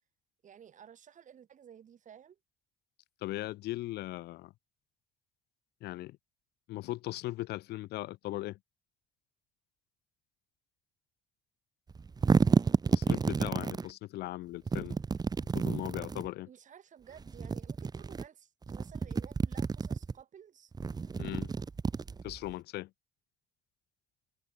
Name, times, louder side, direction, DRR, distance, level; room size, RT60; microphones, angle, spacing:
voice 1, 0.4-2.4 16.5-20.7, right 8 dB, 50° right, 6.0 m, -54 dB
voice 2, 3.2-4.5 5.8-6.2 6.7-8.6 12.9-15.0 15.5-16.5 21.2-21.5 22.2-22.9, left 17 dB, 75° left, 0.8 m, -38 dB
sound 1, 11.9-13.9 14.7-16.3 17.2-18.2 18.6-20.1 20.7-22.5, right 5 dB, 25° right, 1.0 m, -30 dB
cardioid pair, 110°, 17 cm